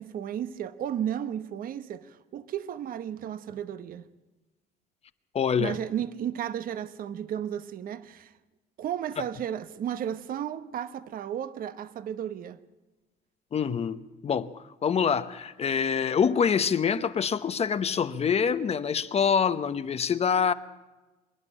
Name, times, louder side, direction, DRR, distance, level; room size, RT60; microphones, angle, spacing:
voice 1, 0.0-4.0 5.6-8.3 8.8-12.6, right 9 dB, 55° right, 1.0 m, -34 dB
voice 2, 5.3-5.8 13.5-20.5, left 7 dB, 40° left, 0.9 m, -26 dB
26.5 x 10.5 x 10.0 m
cardioid pair, 110°, 17 cm